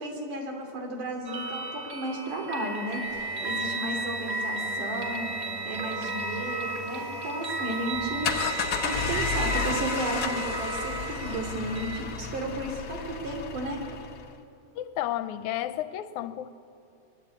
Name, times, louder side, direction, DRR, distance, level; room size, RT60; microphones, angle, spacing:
voice 1, 0.0-13.8, right 1 dB, 85° right, 4.7 m, -34 dB
sound 1, 1.3-12.0, right 2 dB, 30° right, 2.4 m, -34 dB
sound 2, 3.1-8.6, equal, 70° right, 8.7 m, -44 dB
sound 3, 8.0-14.3, left 6 dB, 60° left, 1.0 m, -32 dB
voice 2, 14.8-16.5, left 13 dB, 80° left, 2.0 m, -32 dB
23.5 x 22.0 x 8.5 m
omnidirectional pair, 3.5 m